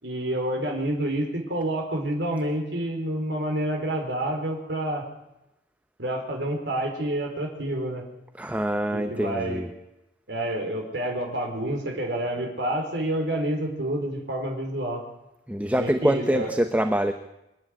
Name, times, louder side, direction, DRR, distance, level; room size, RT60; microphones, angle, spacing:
voice 1, 0.0-5.0 6.0-8.0 8.9-9.6 10.3-15.0 15.7-16.5, right 1 dB, 70° right, 1 dB, 4.7 m, -28 dB
voice 2, 8.4-9.7 15.5-17.1, right 1 dB, 10° right, 8 dB, 0.9 m, -25 dB
26.5 x 10.5 x 9.7 m, 0.91 s
head